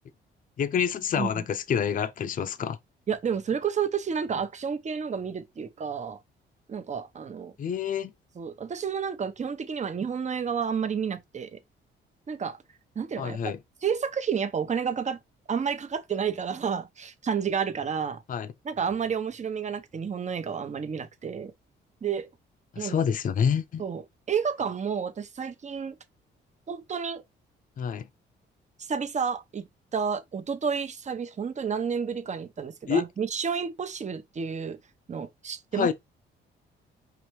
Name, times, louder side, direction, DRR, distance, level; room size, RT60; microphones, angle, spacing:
voice 1, 0.6-2.8 7.6-8.1 13.2-13.6 18.3-18.5 22.7-23.8 27.8-28.1 32.9-33.0 35.7-35.9, left 7 dB, 45° left, 0.5 m, -27 dB
voice 2, 3.1-6.2 6.7-7.5 8.4-11.6 12.3-12.6 12.9-13.4 13.8-15.2 15.5-18.2 18.6-21.5 22.0-22.3 22.8-23.0 23.8-24.0 24.3-26.0 26.7-27.2 28.8-29.6 29.9-34.8 35.1-35.9, right 6 dB, 35° right, 0.9 m, -30 dB
5.0 x 3.2 x 3.0 m
cardioid pair, 90°, 20 cm